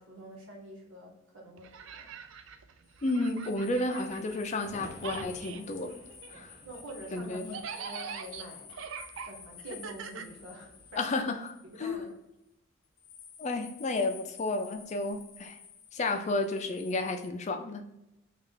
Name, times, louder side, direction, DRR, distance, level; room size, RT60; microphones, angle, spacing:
voice 1, 0.0-2.1 6.6-8.7 9.2-11.1 11.6-12.1, equal, 90° right, -2 dB, 1.3 m, -46 dB
sound 1, 1.6-4.7 4.9-10.9, right 6 dB, 75° right, 0.4 m, -44 dB
sound 2, 2.8-12.1 13.0-17.3, left 7 dB, 75° left, 0.6 m, -52 dB
voice 2, 3.0-6.0 6.3-6.5 7.1-7.6 11.0-12.1 13.4-15.6 15.9-17.8, left 2 dB, 35° left, 6 dB, 0.4 m, -32 dB
sound 3, 4.6-8.7 9.0-9.8 11.7-12.2, right 1 dB, 15° right, 0.6 m, -52 dB
3.2 x 2.4 x 3.7 m, 0.89 s
head